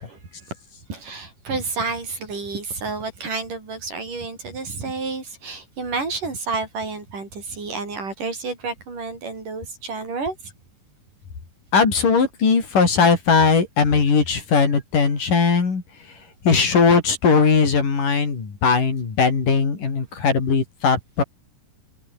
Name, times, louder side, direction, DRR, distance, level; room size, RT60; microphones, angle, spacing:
voice 1, 0.1-0.5 0.9-10.4, right 4 dB, 60° right, 8.4 m, -30 dB
voice 2, 11.7-15.8 16.4-21.2, left 5 dB, 60° left, 6.3 m, -19 dB
omnidirectional pair, 4.2 m